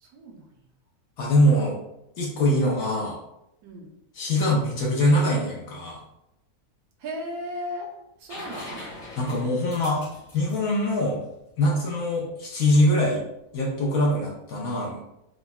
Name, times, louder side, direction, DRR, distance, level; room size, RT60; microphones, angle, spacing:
voice 1, 0.0-0.5 3.6-3.9 7.0-7.9 8.2-8.8, equal, 75° right, -1 dB, 1.1 m, -35 dB
voice 2, 1.2-1.8 2.2-3.2 4.1-6.0 9.2-10.1 10.3-11.2 11.6-13.2 13.5-15.0, left 1 dB, 70° left, -2 dB, 1.0 m, -23 dB
sound 1, 8.3-12.0 13.9-14.0, left 1 dB, 50° left, 1.5 m, -42 dB
3.7 x 2.1 x 2.2 m, 0.84 s
omnidirectional pair, 1.6 m